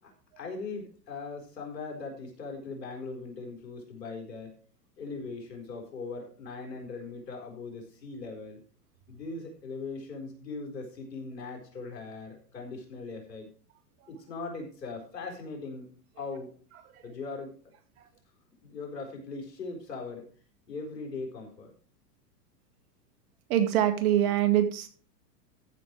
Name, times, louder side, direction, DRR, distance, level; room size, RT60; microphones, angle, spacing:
voice 1, 0.0-4.5 5.0-8.6 9.1-13.5 14.1-15.9 16.2-16.5 17.0-17.5 18.6-20.3 20.7-21.7, left 4 dB, 85° left, 2 dB, 4.7 m, -40 dB
voice 2, 23.5-24.9, right 11 dB, 60° right, 8 dB, 2.1 m, -24 dB
14.0 x 6.5 x 4.7 m, 0.42 s
hypercardioid pair, 110°, 48 cm